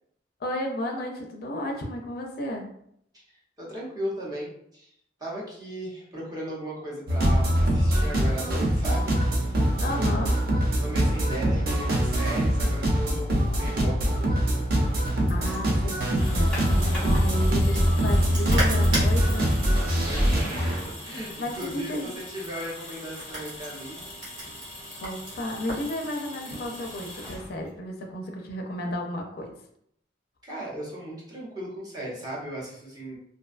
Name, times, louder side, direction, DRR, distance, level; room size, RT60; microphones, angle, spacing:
voice 1, 0.4-2.7 9.8-10.3 15.3-19.5 21.4-22.1 25.0-29.5, left 1 dB, 55° left, 2 dB, 0.4 m, -33 dB
voice 2, 3.6-4.9 5.2-9.7 10.0-10.2 10.8-14.6 20.0-20.7 21.0-24.0 30.4-33.2, right 1 dB, 20° right, -6 dB, 0.7 m, -37 dB
sound 1, 7.1-20.8, equal, 55° right, 0.5 m, -23 dB
sound 2, 14.8-25.9, right 1 dB, 80° right, 1.2 m, -38 dB
sound 3, 16.0-27.9, left 1 dB, 5° left, 0.9 m, -40 dB
2.5 x 2.2 x 2.4 m, 0.70 s
head